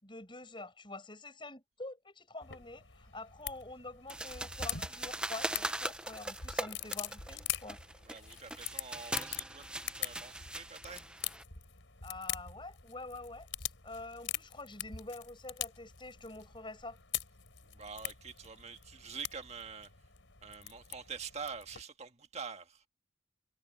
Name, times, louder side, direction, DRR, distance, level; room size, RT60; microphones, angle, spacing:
voice 1, 0.0-7.8 12.0-17.0, left 2 dB, 25° left, 7.5 m, -47 dB
sound 1, 2.4-21.8, left 11 dB, 90° left, 4.4 m, -44 dB
sound 2, 4.1-11.4, right 1 dB, 5° right, 0.9 m, -40 dB
voice 2, 8.1-11.0 17.7-19.9 20.4-22.8, right 5 dB, 35° right, 1.7 m, -46 dB
head